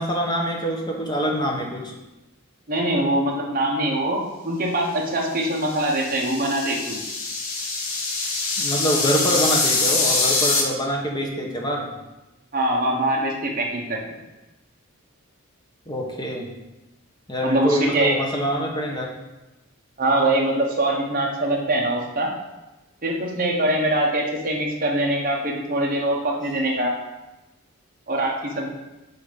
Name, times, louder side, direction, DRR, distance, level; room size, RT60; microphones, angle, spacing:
voice 1, 0.0-1.9 8.6-11.9 15.9-16.5 17.3-19.1, equal, 20° left, 0 dB, 0.9 m, -25 dB
voice 2, 2.7-7.0 12.5-14.0 17.4-18.2 20.0-22.3 23.0-26.9 28.1-28.7, right 1 dB, 40° right, -1 dB, 1.2 m, -23 dB
sound 1, 5.5-10.6, left 3 dB, 70° left, 1.3 m, -24 dB
8.4 x 2.9 x 5.2 m, 1.0 s
head